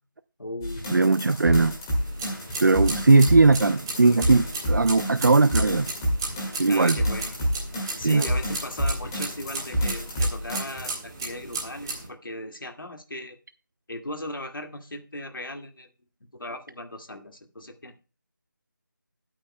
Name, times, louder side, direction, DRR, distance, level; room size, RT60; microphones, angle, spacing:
voice 1, 0.4-0.9 6.7-7.3 8.0-13.4 13.9-15.9 16.3-18.0, left 1 dB, 90° left, 2.1 m, -37 dB
sound 1, 0.6-10.9, equal, 10° left, 1.9 m, -28 dB
voice 2, 0.9-1.7 2.6-5.9 6.6-7.0 7.9-8.3, right 3 dB, 65° right, 0.5 m, -19 dB
sound 2, 1.9-12.1, right 3 dB, 10° right, 1.6 m, -36 dB
16.0 x 8.8 x 2.2 m
figure-of-eight pair, 175°, 11 cm